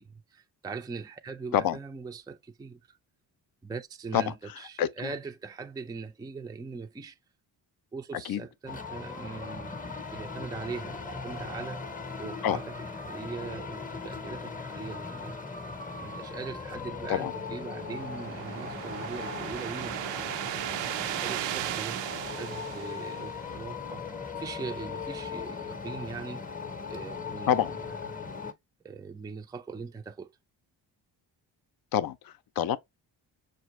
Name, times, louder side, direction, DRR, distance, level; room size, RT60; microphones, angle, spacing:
voice 1, 0.0-3.0 3.6-7.2 7.9-11.8 12.2-12.7 13.0-15.4 16.0-20.2 20.9-24.1 24.4-26.5 26.9-27.5 28.1-28.2 28.8-30.3, right 4 dB, 10° right, 0.4 m, -41 dB
sound 1, 8.7-28.5, left 5 dB, 20° left, 0.7 m, -39 dB
sound 2, 17.3-23.7, right 12 dB, 75° right, 0.6 m, -36 dB
voice 2, 27.5-27.8 31.9-32.8, left 10 dB, 55° left, 0.6 m, -26 dB
6.3 x 2.4 x 3.0 m
cardioid pair, 70°, 44 cm